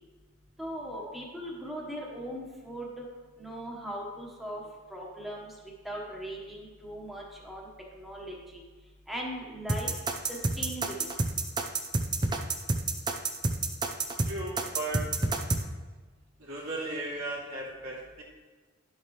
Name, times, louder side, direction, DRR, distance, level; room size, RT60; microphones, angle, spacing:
voice 1, 0.6-3.0 3.4-4.6 4.9-5.5 5.8-7.7 7.9-8.6 9.1-9.9 10.3-11.0, equal, ahead, -3 dB, 1.4 m, -39 dB
sound 1, 9.7-15.6, right 2 dB, 20° right, 0.6 m, -28 dB
voice 2, 14.2-15.0 16.4-18.2, right 2 dB, 80° right, -4 dB, 2.6 m, -36 dB
11.0 x 7.2 x 3.2 m, 1.3 s
head